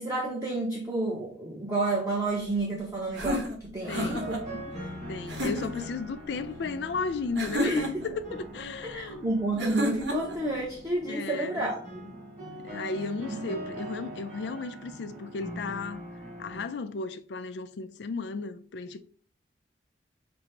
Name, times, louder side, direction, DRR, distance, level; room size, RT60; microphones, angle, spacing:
voice 1, 0.0-4.6 7.6-7.9 8.9-12.1 13.3-13.4, right 2 dB, 15° right, 0.7 m, -30 dB
sound 1, 3.1-4.4 5.3-5.9 7.4-8.1 9.6-10.4, equal, 85° right, 0.9 m, -31 dB
sound 2, 3.8-16.6, right 1 dB, 40° right, 1.8 m, -42 dB
voice 2, 3.9-4.4 5.1-9.3 9.5-9.7 11.1-11.7 12.6-16.0 16.4-19.0, left 4 dB, 70° left, 0.4 m, -35 dB
5.9 x 2.0 x 3.2 m
head